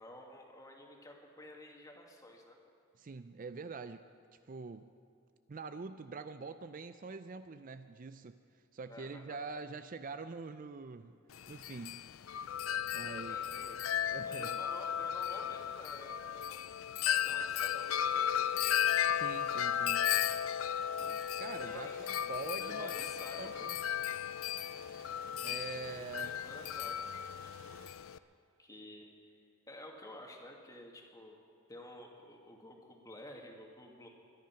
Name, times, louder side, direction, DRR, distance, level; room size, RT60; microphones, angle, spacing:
voice 1, 0.0-2.6 8.9-9.5 13.3-13.9 14.3-16.8 17.2-18.8 21.5-22.0 22.6-23.7 25.9-27.2 27.6-27.8 28.6-29.4 29.7-31.4 31.7-34.1, left 1 dB, 15° left, 1 dB, 2.0 m, -51 dB
voice 2, 3.0-4.1 4.5-4.9 5.5-8.4 8.7-11.2 11.5-12.0 12.9-13.4 14.1-14.6 19.1-20.1 21.0-23.8 25.4-26.4, right 4 dB, 40° right, 11 dB, 0.4 m, -45 dB
Wind chime, 11.3-28.2, left 9 dB, 70° left, 0.4 m, -35 dB
sound 1, 17.8-27.9, right 2 dB, 70° right, 3.6 m, -58 dB
23.5 x 10.5 x 5.8 m, 2.5 s
head